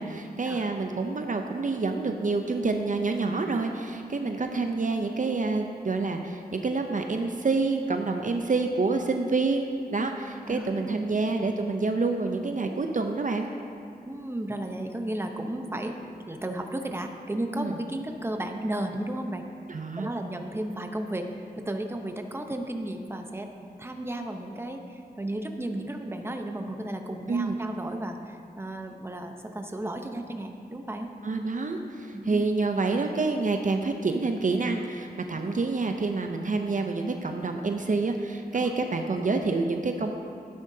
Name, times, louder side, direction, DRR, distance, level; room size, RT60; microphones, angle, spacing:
voice 1, 0.0-13.5 17.6-17.8 19.7-20.1 27.3-27.6 31.2-40.1, right 3 dB, 55° right, 4 dB, 0.6 m, -27 dB
voice 2, 10.5-11.0 14.1-16.0 16.3-19.4 20.0-23.5 23.8-31.1 32.1-32.5 38.5-38.7, right 1 dB, 15° right, 4 dB, 0.8 m, -34 dB
12.5 x 10.0 x 2.7 m, 2.5 s
wide cardioid pair, 60°, 16 cm